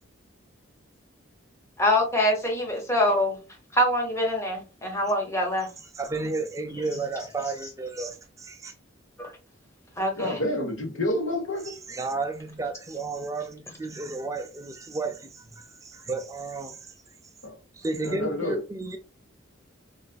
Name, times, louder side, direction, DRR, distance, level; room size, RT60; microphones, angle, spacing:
voice 1, 1.8-3.4 3.7-5.7 9.2-9.3 10.0-10.4, left 1 dB, 15° left, 0.8 m, -24 dB
voice 2, 5.9-8.7 11.7-16.9 17.7-19.0, right 3 dB, 15° right, 0.3 m, -33 dB
voice 3, 10.2-11.7 17.4-17.6 18.0-18.6, left 1 dB, 90° left, 1.1 m, -28 dB
3.9 x 2.5 x 2.3 m
head